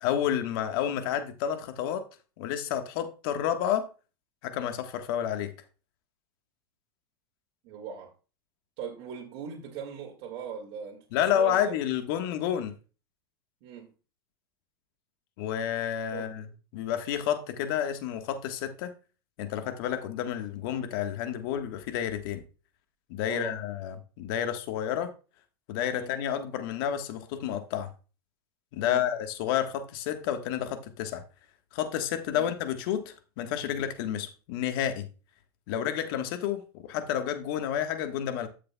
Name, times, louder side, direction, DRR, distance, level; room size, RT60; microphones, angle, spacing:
voice 1, 0.0-2.0 2.4-3.9 4.4-5.5 11.1-12.7 15.4-16.5 16.7-18.9 19.4-22.4 23.1-25.1 25.7-27.9 28.7-31.2 31.7-35.1 35.7-38.5, left 10 dB, 60° left, 1.4 m, -30 dB
voice 2, 7.6-8.1 8.8-11.0 11.3-11.8 13.6-13.9 16.1-16.3 23.3-23.6 25.9-26.1 28.8-29.1 32.3-32.5, right 8 dB, 50° right, 2.1 m, -39 dB
12.5 x 6.7 x 2.3 m
hypercardioid pair, 115°, 13 cm